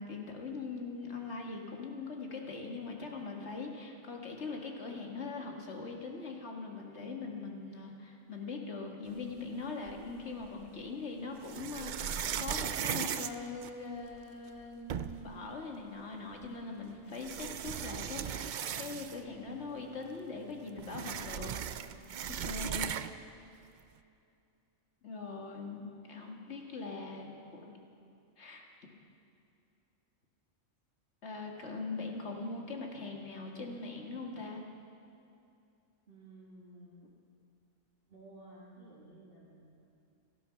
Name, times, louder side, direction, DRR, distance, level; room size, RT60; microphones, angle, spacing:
voice 1, 0.0-21.5 22.3-23.0 25.0-27.7 28.4-28.6 31.2-34.6, left 4 dB, 55° left, 1 dB, 1.9 m, -41 dB
sound 1, 9.9-10.6 11.4-14.2 14.6-14.7 14.9-15.4 16.4-16.5 17.1-19.4 19.7-19.8 20.1-23.3, right 8 dB, 85° right, 0.4 m, -37 dB
voice 2, 36.1-37.0 38.1-39.6, right 1 dB, 40° right, -8 dB, 2.6 m, -54 dB
17.5 x 13.0 x 5.7 m, 2.6 s
omnidirectional pair, 1.4 m